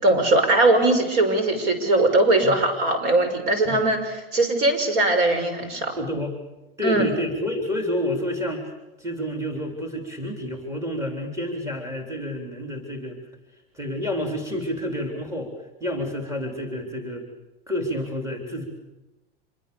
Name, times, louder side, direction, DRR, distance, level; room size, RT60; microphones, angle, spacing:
voice 1, 0.0-5.9 6.8-7.0, right 2 dB, 60° right, 7 dB, 6.0 m, -20 dB
voice 2, 6.0-6.3 6.8-8.7 9.0-13.2 13.7-15.5 15.8-17.3 17.7-18.7, left 1 dB, 10° right, 3 dB, 3.6 m, -29 dB
26.5 x 22.5 x 7.0 m, 1.0 s
supercardioid pair, 145°, 29 cm